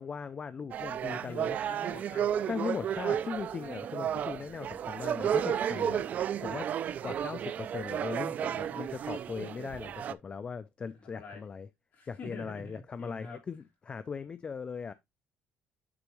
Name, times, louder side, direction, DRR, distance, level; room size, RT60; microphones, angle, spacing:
voice 1, 0.0-1.6 2.5-6.1 6.4-6.7 7.0-11.7 12.1-14.9, left 6 dB, 25° left, 0.4 m, -39 dB
sound 1, 0.7-10.1, right 9 dB, 45° right, 0.4 m, -33 dB
voice 2, 1.1-2.3 6.4-6.6 11.0-11.4 11.9-13.4, left 3 dB, 45° left, 3.8 m, -46 dB
9.7 x 3.9 x 3.0 m
cardioid pair, 155°, 4 cm